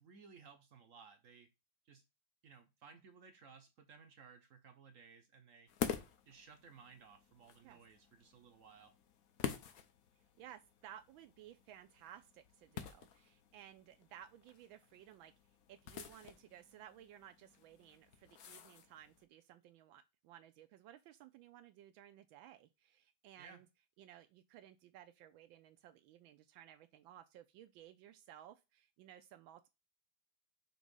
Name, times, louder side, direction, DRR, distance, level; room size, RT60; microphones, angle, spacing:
voice 1, 0.0-1.5 1.9-2.0 2.4-5.7 6.3-8.9 23.4-23.6, right 5 dB, 60° right, 0.9 m, -59 dB
sound 1, 5.7-19.2, left 9 dB, 60° left, 1.0 m, -48 dB
voice 2, 10.2-15.3 15.7-23.7 24.0-29.7, right 11 dB, 80° right, 1.3 m, -58 dB
6.1 x 3.0 x 5.3 m
omnidirectional pair, 2.2 m